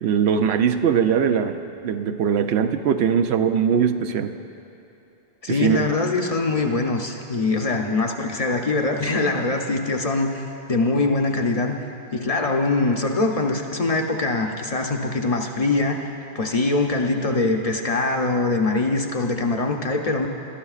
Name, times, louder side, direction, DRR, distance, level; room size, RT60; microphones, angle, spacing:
voice 1, 0.0-1.6 1.8-4.4 5.5-5.9, right 7 dB, 85° right, 8 dB, 0.8 m, -21 dB
voice 2, 5.4-10.4 10.7-11.7 12.1-16.0 16.3-20.3, left 3 dB, 40° left, 2 dB, 0.7 m, -23 dB
20.0 x 12.5 x 2.4 m, 2.9 s
omnidirectional pair, 1.1 m